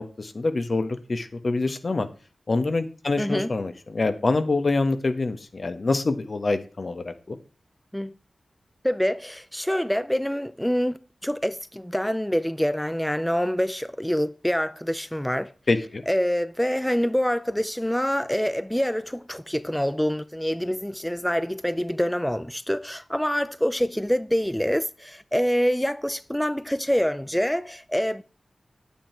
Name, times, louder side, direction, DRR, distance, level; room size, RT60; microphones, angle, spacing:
voice 1, 0.0-2.1 2.5-7.4 15.7-16.0, left 3 dB, 55° left, 1.4 m, -26 dB
voice 2, 3.2-3.5 7.9-8.1 8.8-15.5 16.1-28.2, equal, 5° left, 0.5 m, -26 dB
10.0 x 8.7 x 4.5 m
wide cardioid pair, 60°, 0 cm